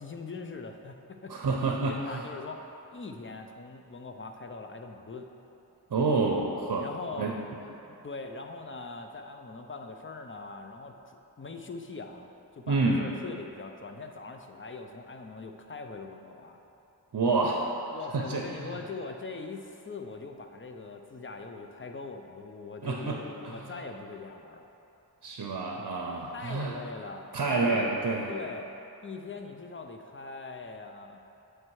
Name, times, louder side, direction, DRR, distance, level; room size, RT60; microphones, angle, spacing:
voice 1, 0.0-1.4 1.7-2.6 2.9-5.3 6.8-7.3 7.9-16.6 17.9-24.7 26.3-28.0 28.3-28.7 29.0-31.2, left 3 dB, 30° left, 4 dB, 0.5 m, -42 dB
voice 2, 1.3-2.2 5.9-6.9 7.2-7.4 12.7-13.1 17.1-17.6 17.9-18.8 22.8-23.7 25.2-26.8 27.3-28.3, right 3 dB, 55° right, 0 dB, 0.7 m, -28 dB
8.6 x 3.3 x 4.7 m, 3.0 s
cardioid pair, 40°, 41 cm